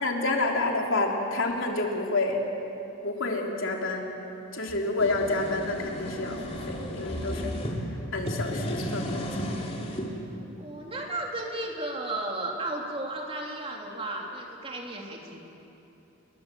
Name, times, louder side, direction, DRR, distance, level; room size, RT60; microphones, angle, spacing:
voice 1, 0.0-2.4 3.0-4.1 4.5-7.5 8.1-9.5, left 2 dB, 65° left, 0 dB, 3.4 m, -29 dB
sound 1, 4.7-7.7 8.2-10.1, equal, 30° left, 3.4 m, -34 dB
voice 2, 10.6-15.4, right 2 dB, 25° right, -1 dB, 3.5 m, -34 dB
29.0 x 22.0 x 7.7 m, 2.9 s
head